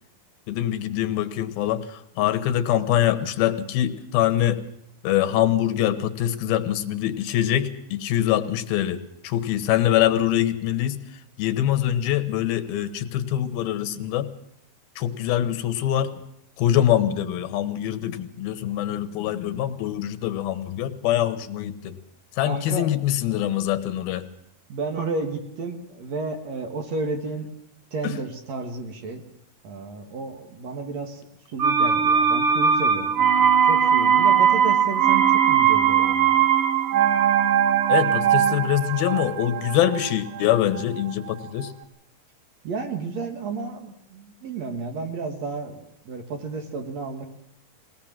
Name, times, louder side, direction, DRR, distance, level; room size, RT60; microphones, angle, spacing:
voice 1, 0.5-4.6 5.0-11.0 11.4-14.3 15.0-16.1 16.6-22.0 22.4-24.3 28.0-28.1 37.9-41.7, left 12 dB, 85° left, 11 dB, 3.0 m, -24 dB
voice 2, 22.5-22.9 24.7-27.5 27.9-29.2 29.6-36.4 42.6-47.3, right 3 dB, 55° right, 5 dB, 2.4 m, -32 dB
sound 1, 31.6-41.3 41.6-41.7, right 8 dB, 85° right, 1.2 m, -20 dB
22.0 x 17.5 x 7.4 m, 0.74 s
omnidirectional pair, 4.2 m